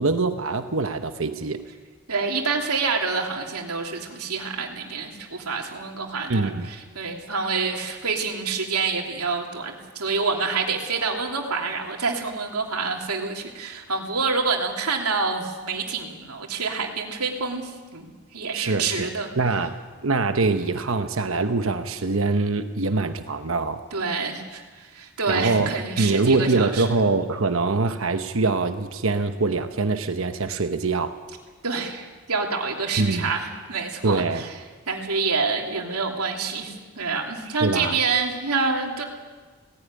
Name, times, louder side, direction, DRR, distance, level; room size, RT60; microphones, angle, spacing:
voice 1, 0.0-1.6 6.3-6.7 18.5-19.1 19.4-23.8 25.3-25.7 26.0-31.2 33.0-33.3 34.0-34.4 37.6-38.0, right 3 dB, 65° right, 8 dB, 1.0 m, -24 dB
voice 2, 2.1-19.3 23.9-26.9 31.6-34.5 34.9-39.0, right 4 dB, 85° right, 1 dB, 3.0 m, -27 dB
18.0 x 15.5 x 9.7 m, 1.4 s
head